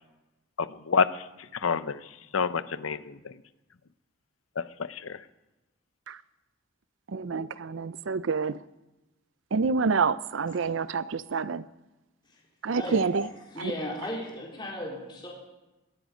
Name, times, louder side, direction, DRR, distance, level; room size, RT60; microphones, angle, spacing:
voice 1, 0.6-1.3 1.5-2.1 2.3-3.3 4.6-5.2, left 5 dB, 80° left, 0.7 m, -28 dB
voice 2, 7.1-8.6 9.5-11.7 12.6-13.3 13.6-13.7, right 4 dB, 70° right, 0.5 m, -28 dB
voice 3, 13.5-15.3, left 1 dB, 20° left, 3.7 m, -35 dB
19.5 x 13.0 x 5.1 m
head